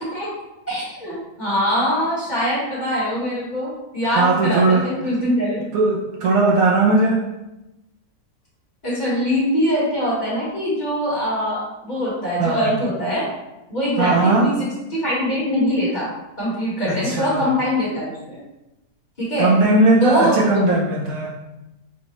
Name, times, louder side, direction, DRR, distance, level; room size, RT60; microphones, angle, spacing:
voice 1, 0.7-5.6 8.8-13.3 13.7-16.1 16.4-18.4 19.2-19.5 20.0-20.6, equal, 30° left, -8 dB, 1.4 m, -23 dB
voice 2, 4.0-4.8 5.7-7.2 12.4-12.7 14.0-14.6 16.9-17.4 19.4-21.3, right 3 dB, 65° right, -4 dB, 1.0 m, -18 dB
4.8 x 2.3 x 3.0 m, 0.96 s
omnidirectional pair, 1.7 m